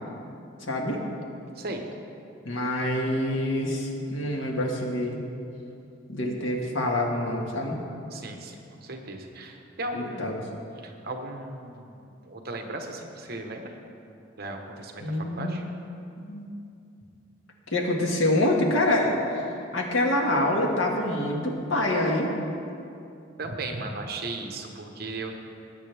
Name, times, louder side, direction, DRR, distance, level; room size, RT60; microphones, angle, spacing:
voice 1, 0.7-1.0 2.5-5.2 6.1-7.8 9.9-10.4 15.0-15.6 16.2-16.5 17.7-19.4 19.7-22.3, left 1 dB, 80° left, 0 dB, 1.8 m, -26 dB
voice 2, 8.1-10.3 10.8-13.7 14.4-15.0 15.4-15.6 23.4-25.4, right 2 dB, 50° right, 3 dB, 1.1 m, -36 dB
19.5 x 8.8 x 3.5 m, 2.6 s
head